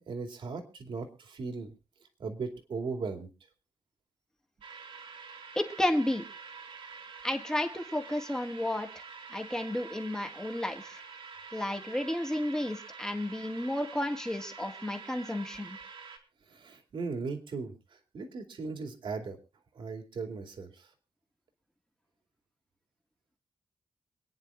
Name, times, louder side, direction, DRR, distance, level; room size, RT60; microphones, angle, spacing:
voice 1, 0.1-1.7 2.2-3.3 16.5-19.4 19.7-20.9, right 4 dB, 65° right, 5 dB, 2.6 m, -38 dB
sound 1, 4.6-16.2, right 5 dB, 85° right, 3.4 m, -47 dB
voice 2, 5.6-6.2 7.2-9.0 9.3-11.0 11.5-15.8, left 1 dB, 5° left, 5 dB, 1.8 m, -32 dB
28.0 x 9.8 x 2.4 m, 0.31 s
wide cardioid pair, 155°, 9 cm